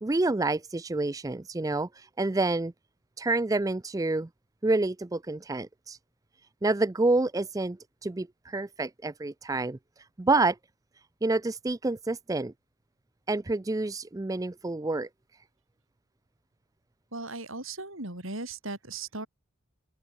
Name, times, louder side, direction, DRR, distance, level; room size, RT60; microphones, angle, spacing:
voice 1, 0.0-2.7 3.2-4.3 4.6-6.0 6.6-9.8 10.2-10.6 11.2-12.5 13.3-15.1, right 2 dB, 15° right, 0.4 m, -28 dB
voice 2, 17.1-19.3, right 2 dB, 70° right, 7.6 m, -37 dB
open air
head